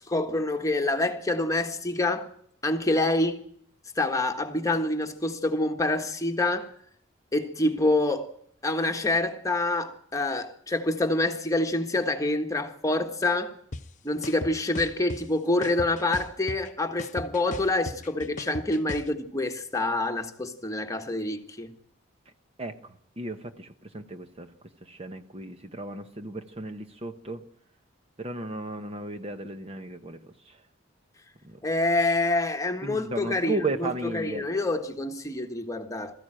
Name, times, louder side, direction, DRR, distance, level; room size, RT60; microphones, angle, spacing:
voice 1, 0.0-2.3 2.6-3.4 4.0-6.7 7.3-8.3 8.6-13.5 14.0-21.7 31.6-36.2, left 2 dB, 15° left, 1.5 m, -27 dB
sound 1, 13.7-13.8 14.2-15.2 15.6-16.7 17.0-19.1, left 2 dB, 40° left, 0.8 m, -36 dB
voice 2, 22.6-24.5 24.8-27.4 28.2-30.6 31.4-31.6 32.8-34.5, right 2 dB, 30° right, 1.0 m, -35 dB
21.5 x 14.0 x 9.0 m
head